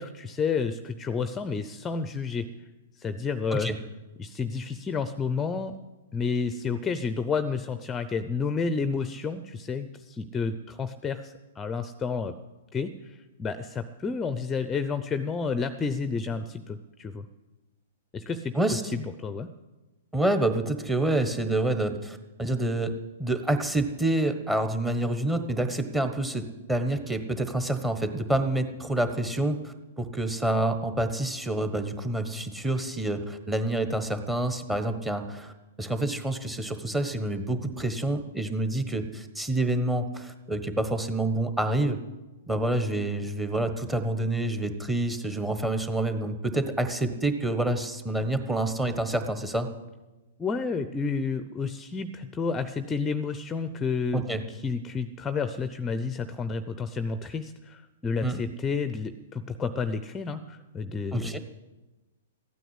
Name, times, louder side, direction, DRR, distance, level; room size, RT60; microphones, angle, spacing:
voice 1, 0.0-2.5 3.0-3.7 4.2-5.7 6.1-12.3 12.7-17.3 18.1-18.5 18.9-19.5 50.4-61.4, left 5 dB, 15° left, 12 dB, 0.7 m, -30 dB
voice 2, 20.1-22.9 23.2-35.5 35.8-42.0 42.5-49.7 54.1-54.4 58.2-58.4 61.1-61.4, right 1 dB, 10° right, 8 dB, 1.3 m, -27 dB
14.5 x 9.2 x 8.2 m, 1.1 s
hypercardioid pair, 120°, 0 cm